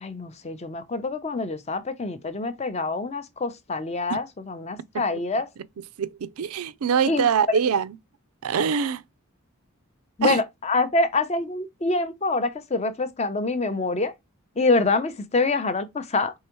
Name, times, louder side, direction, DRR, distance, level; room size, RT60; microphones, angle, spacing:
voice 1, 0.0-5.5 7.1-7.3 10.2-14.1 14.6-16.3, left 3 dB, 30° left, 0.5 m, -26 dB
voice 2, 6.0-8.0 8.4-9.0 10.2-10.4, right 6 dB, 85° right, 0.4 m, -24 dB
4.7 x 3.4 x 3.0 m
head